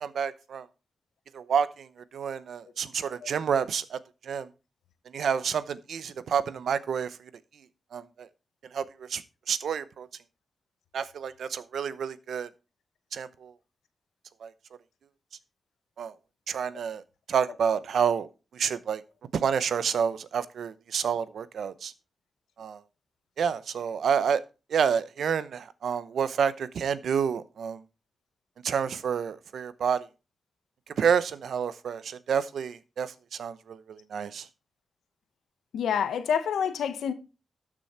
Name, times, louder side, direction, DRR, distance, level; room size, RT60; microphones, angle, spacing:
voice 1, 0.0-0.7 1.3-4.5 5.1-7.3 7.9-8.3 8.7-10.1 10.9-12.5 13.1-13.5 14.4-14.5 16.0-16.1 16.5-17.0 17.3-18.3 18.5-19.0 19.3-21.9 22.6-22.8 23.4-24.4 24.7-27.8 28.6-30.1 31.0-34.5, right 7 dB, 80° right, 0.8 m, -29 dB
voice 2, 35.7-37.1, left 7 dB, 85° left, 1.1 m, -27 dB
12.5 x 6.2 x 4.4 m
cardioid pair, 55°, 0 cm